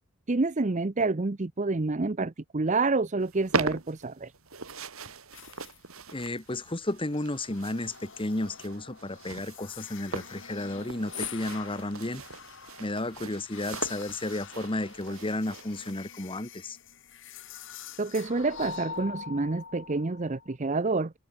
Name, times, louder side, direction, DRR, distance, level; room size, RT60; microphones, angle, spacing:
voice 1, 0.3-4.3 18.0-21.1, right 3 dB, 35° right, 0.7 m, -28 dB
sound 1, 3.2-15.9, right 3 dB, 75° right, 4.3 m, -39 dB
sound 2, 5.3-5.8 6.1-6.6 7.1-20.6, left 7 dB, 60° left, 2.3 m, -45 dB
voice 2, 6.1-12.2 12.8-16.8, left 2 dB, 25° left, 1.4 m, -33 dB
head